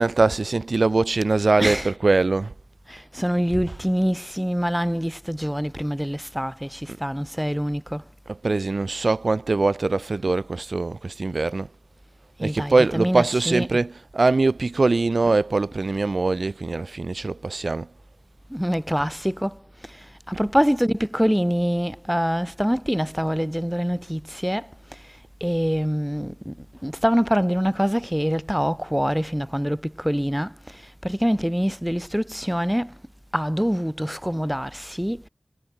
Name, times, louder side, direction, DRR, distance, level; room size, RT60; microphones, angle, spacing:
voice 1, 0.0-2.5 6.9-7.0 8.3-11.7 12.4-17.9 20.3-20.4, right 3 dB, 75° right, 1.5 m, -22 dB
voice 2, 2.9-8.0 12.4-13.7 18.5-19.6 20.3-24.7 25.4-26.5 26.8-30.5 31.0-32.9 33.3-35.2, equal, 5° right, 1.0 m, -24 dB
wide cardioid pair, 40°, 0 cm